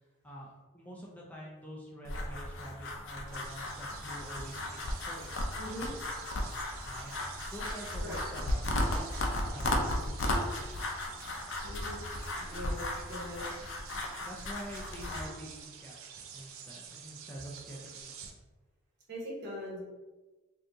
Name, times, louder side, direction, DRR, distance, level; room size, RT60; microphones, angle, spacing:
voice 1, 0.2-5.4 6.9-7.2 7.5-11.0 14.2-16.0 16.3-18.3, equal, 10° left, -4 dB, 0.4 m, -47 dB
sound 1, 2.0-15.2, left 1 dB, 65° left, 0.5 m, -35 dB
sound 2, 3.3-18.3, right 6 dB, 75° right, 0.4 m, -49 dB
voice 2, 5.6-5.9 8.0-8.2 11.6-12.0 12.4-13.4 19.1-19.8, equal, 55° right, -5 dB, 1.2 m, -41 dB
2.7 x 2.6 x 3.4 m, 1.2 s
head